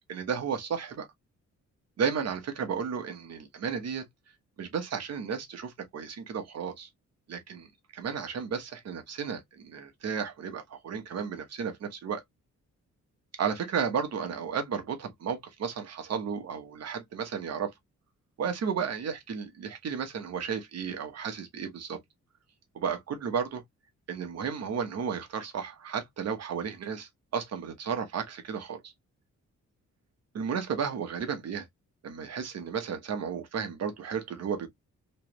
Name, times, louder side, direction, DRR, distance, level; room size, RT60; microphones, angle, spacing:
voice 1, 0.1-1.1 2.0-4.0 4.6-6.9 7.3-7.7 7.9-12.2 13.4-17.7 18.4-22.0 22.7-23.6 24.1-28.9 30.3-31.7 32.0-34.7, right 6 dB, 55° right, 1.1 m, -33 dB
3.2 x 3.2 x 3.0 m
wide cardioid pair, 175°, 30 cm